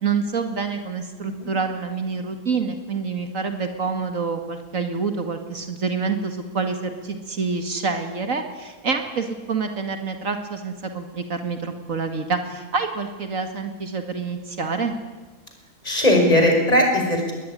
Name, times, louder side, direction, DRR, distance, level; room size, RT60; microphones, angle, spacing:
voice 1, 0.0-14.9, right 4 dB, 70° right, 6 dB, 2.4 m, -27 dB
voice 2, 15.8-17.3, left 1 dB, 25° left, 2 dB, 5.9 m, -19 dB
22.0 x 19.5 x 9.9 m, 1.2 s
omnidirectional pair, 1.5 m